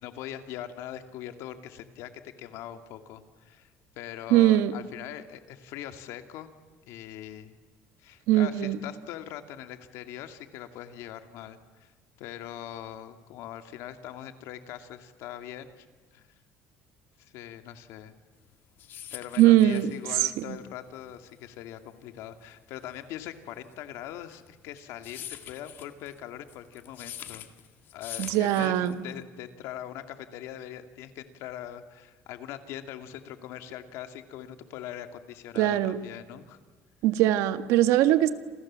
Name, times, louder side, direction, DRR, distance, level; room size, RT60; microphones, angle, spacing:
voice 1, 0.0-3.7 4.0-6.5 6.8-7.6 8.0-11.9 12.2-15.8 16.1-16.2 17.2-18.1 19.1-27.5 27.9-36.6, left 11 dB, 70° left, 8 dB, 2.3 m, -41 dB
voice 2, 4.3-4.7 8.3-8.8 19.4-19.9 20.2-20.6 28.2-29.0 35.6-36.0 37.0-38.3, right 13 dB, 75° right, 11 dB, 1.6 m, -21 dB
sound 1, 18.4-29.2, left 11 dB, 45° left, 1.7 m, -45 dB
28.5 x 27.5 x 7.5 m, 1.4 s
cardioid pair, 180°, 5 cm